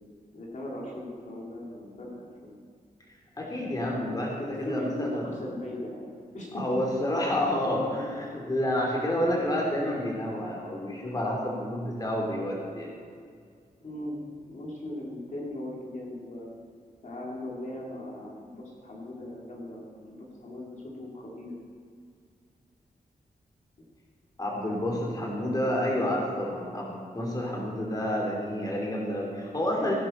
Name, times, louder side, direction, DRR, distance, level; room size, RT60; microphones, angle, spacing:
voice 1, 0.3-2.6 4.4-6.8 9.1-9.3 13.8-16.6 17.0-21.5, left 1 dB, 50° left, -3 dB, 2.6 m, -38 dB
voice 2, 3.4-5.4 6.5-12.9 24.4-29.9, left 1 dB, 25° left, -2 dB, 2.7 m, -29 dB
16.0 x 11.0 x 4.3 m, 2.1 s
wide cardioid pair, 130°, 15 cm